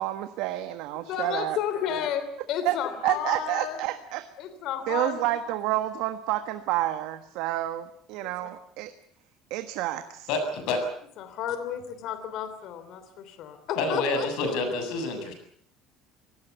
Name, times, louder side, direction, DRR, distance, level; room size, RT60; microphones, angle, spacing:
voice 1, 0.0-1.6 2.6-2.7 3.0-4.3 4.9-8.9 9.5-10.3, right 14 dB, 70° right, 9 dB, 1.4 m, -29 dB
voice 2, 1.0-3.8 4.4-5.3 8.2-8.5 11.2-14.3, left 9 dB, 50° left, 10 dB, 3.0 m, -32 dB
voice 3, 10.3-10.8 13.8-15.3, left 3 dB, 70° left, 7 dB, 7.5 m, -28 dB
26.0 x 18.0 x 8.1 m, 0.64 s
cardioid pair, 165°, 0 cm